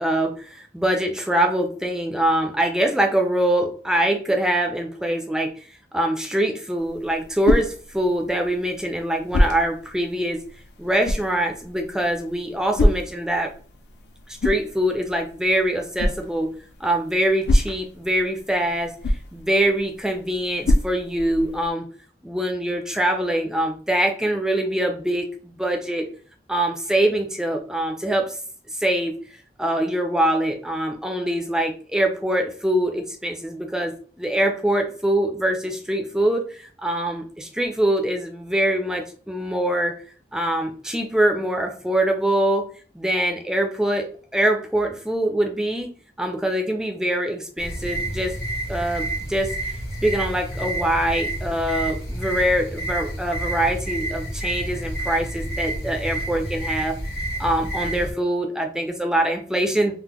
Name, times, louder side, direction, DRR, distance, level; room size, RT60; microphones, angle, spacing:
voice 1, 0.0-5.6 5.9-10.4 10.8-13.5 14.4-16.5 16.8-18.9 19.3-21.8 22.2-26.1 26.5-28.4 28.7-29.2 29.6-39.9 40.3-42.6 42.9-44.1 44.3-45.9 46.2-48.3 48.7-49.5 50.0-57.0 57.4-59.9, right 1 dB, 5° right, 2 dB, 0.4 m, -23 dB
sound 1, 6.8-21.7, left 1 dB, 70° left, 0.4 m, -27 dB
sound 2, 47.6-58.1, right 1 dB, 55° left, 1.3 m, -29 dB
3.6 x 2.1 x 2.9 m, 0.43 s
head